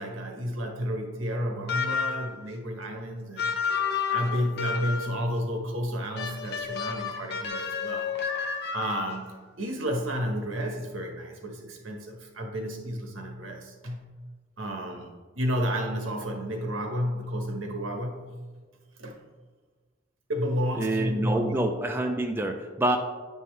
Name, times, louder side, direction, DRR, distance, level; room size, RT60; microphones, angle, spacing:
voice 1, 0.0-3.4 4.1-8.1 8.7-14.1 14.6-18.3 19.0-19.2 20.3-21.6, equal, 70° right, 2 dB, 1.2 m, -31 dB
sound 1, 1.7-2.4 3.4-5.2 6.2-9.4, left 6 dB, 55° left, 0.6 m, -30 dB
voice 2, 20.8-23.0, right 1 dB, 10° right, 3 dB, 0.4 m, -27 dB
9.4 x 5.4 x 3.2 m, 1.4 s
head